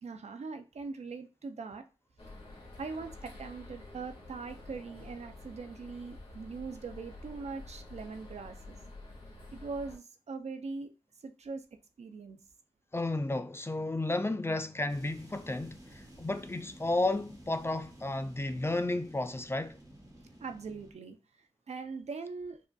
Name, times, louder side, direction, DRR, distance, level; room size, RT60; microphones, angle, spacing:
voice 1, 0.0-1.8 2.8-8.8 9.5-10.9 11.2-11.6 12.0-12.4 20.4-22.6, right 4 dB, 85° right, 0.5 m, -41 dB
sound 1, 2.2-10.0, left 2 dB, 55° left, 1.7 m, -49 dB
voice 2, 12.9-19.8, left 2 dB, 20° left, 0.4 m, -32 dB
sound 2, 14.9-20.9, right 1 dB, 30° right, 1.3 m, -53 dB
4.9 x 2.4 x 2.3 m
wide cardioid pair, 60°, 11 cm